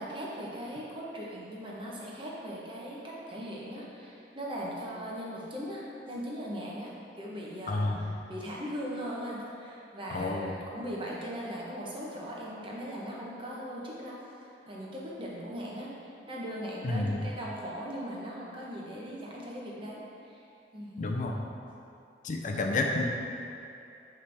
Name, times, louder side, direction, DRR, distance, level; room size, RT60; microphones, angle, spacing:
voice 1, 0.0-14.2 14.7-20.4 20.7-21.2, equal, 30° right, -5 dB, 1.0 m, -39 dB
voice 2, 7.7-8.1 10.1-10.6 16.8-17.2 21.0-21.4 22.2-23.1, left 2 dB, 45° left, 1 dB, 0.4 m, -30 dB
8.3 x 3.3 x 3.4 m, 2.7 s
head